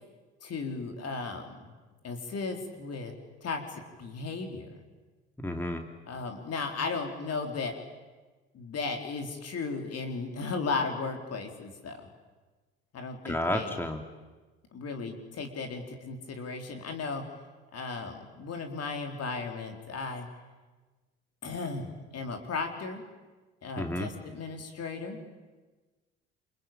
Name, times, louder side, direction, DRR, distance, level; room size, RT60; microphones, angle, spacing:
voice 1, 0.4-1.7 2.0-3.1 3.4-4.8 6.1-7.7 8.5-12.1 12.9-13.7 14.7-17.2 17.7-20.3 21.4-23.0 23.6-25.2, left 4 dB, 45° left, 4 dB, 4.1 m, -35 dB
voice 2, 5.4-5.8 13.2-14.0 23.8-24.1, left 1 dB, 5° left, 4 dB, 2.6 m, -31 dB
28.5 x 23.0 x 9.0 m, 1.3 s
figure-of-eight pair, 55°, 34 cm